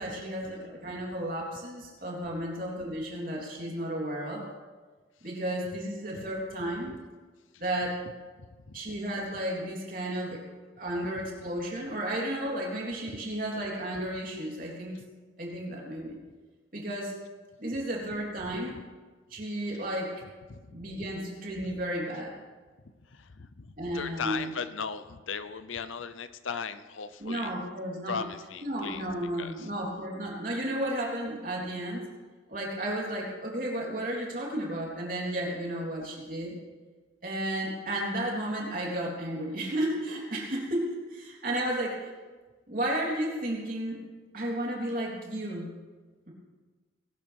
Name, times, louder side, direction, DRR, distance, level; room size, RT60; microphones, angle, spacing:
voice 1, 0.0-4.4 5.2-6.9 7.6-8.0 8.7-10.4 10.8-15.0 15.4-16.2 16.7-17.1 17.6-18.7 19.3-20.1 20.7-22.3 23.8-24.5 27.2-28.2 28.6-32.0 32.5-36.6 37.2-42.0 42.7-44.0 44.3-45.7, right 1 dB, 45° right, -3 dB, 3.5 m, -33 dB
voice 2, 20.5-20.9 23.1-27.5 28.1-29.1 29.4-29.7, left 6 dB, 80° left, 12 dB, 0.7 m, -37 dB
21.0 x 12.0 x 3.5 m, 1.4 s
head